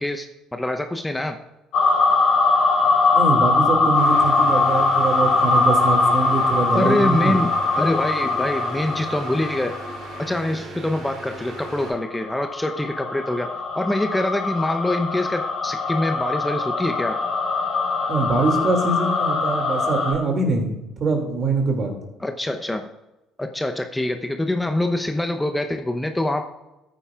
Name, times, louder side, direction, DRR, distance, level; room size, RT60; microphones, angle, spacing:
voice 1, 0.0-1.4 6.7-9.7 10.2-17.2 22.2-22.9 23.4-26.5, left 1 dB, 10° left, 6 dB, 0.9 m, -25 dB
sound 1, 1.7-10.4 11.5-20.1, left 3 dB, 65° left, 3.2 m, -21 dB
voice 2, 3.1-7.4 18.1-22.0, right 3 dB, 45° right, 3 dB, 2.6 m, -23 dB
sound 2, 3.9-11.9, right 3 dB, 65° right, 3.2 m, -38 dB
13.5 x 9.1 x 2.5 m, 0.97 s
hypercardioid pair, 55°, 0 cm